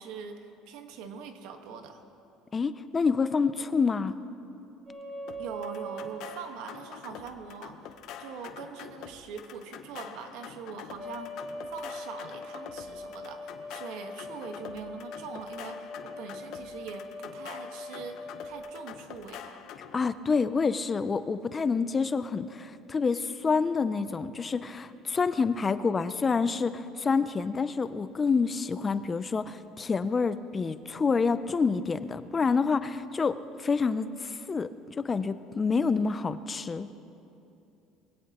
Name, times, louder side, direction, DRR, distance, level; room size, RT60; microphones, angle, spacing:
voice 1, 0.0-2.0 5.4-7.9 8.2-11.5 11.7-19.7, right 5 dB, 75° right, 5 dB, 1.4 m, -42 dB
voice 2, 2.5-4.1 19.9-34.7 35.0-36.9, left 5 dB, 20° left, 13 dB, 0.4 m, -28 dB
sound 1, 4.9-6.1 11.0-18.6, left 1 dB, 30° right, 4.2 m, -41 dB
sound 2, 5.3-20.1, left 9 dB, 60° left, 0.9 m, -46 dB
22.5 x 16.5 x 3.0 m, 2.8 s
cardioid pair, 150°, 0 cm